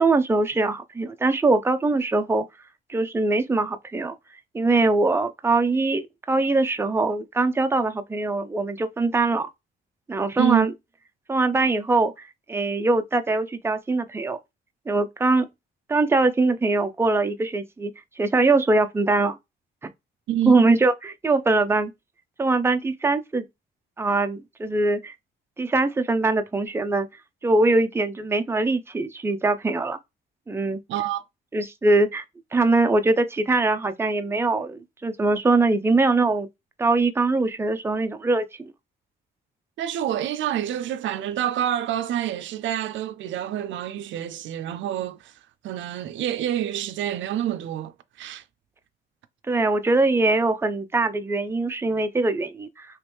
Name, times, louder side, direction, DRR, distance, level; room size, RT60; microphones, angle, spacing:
voice 1, 0.0-2.5 2.9-4.2 4.5-9.5 10.1-10.7 11.3-14.4 14.9-15.5 15.9-17.9 18.2-19.4 20.5-21.9 22.4-23.4 24.0-25.1 25.6-27.1 27.4-30.0 30.5-30.8 31.5-32.2 32.5-36.5 36.8-38.7 49.5-52.9, right 3 dB, 10° right, 0.5 m, -22 dB
voice 2, 20.3-20.7 30.9-31.2 39.8-45.3 45.6-48.4, right 11 dB, 70° right, 0.4 m, -27 dB
3.1 x 3.0 x 3.3 m
cardioid pair, 90°, 20 cm